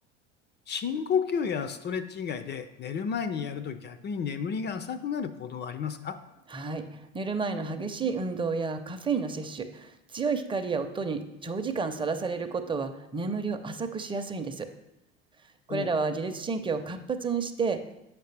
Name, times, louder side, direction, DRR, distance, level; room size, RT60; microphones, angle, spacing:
voice 1, 0.7-6.2 15.7-15.9, left 6 dB, 30° left, 11 dB, 0.4 m, -32 dB
voice 2, 6.5-14.7 15.7-18.0, right 4 dB, 15° right, 7 dB, 0.6 m, -31 dB
7.7 x 5.9 x 3.3 m, 0.88 s
hypercardioid pair, 80°, 36 cm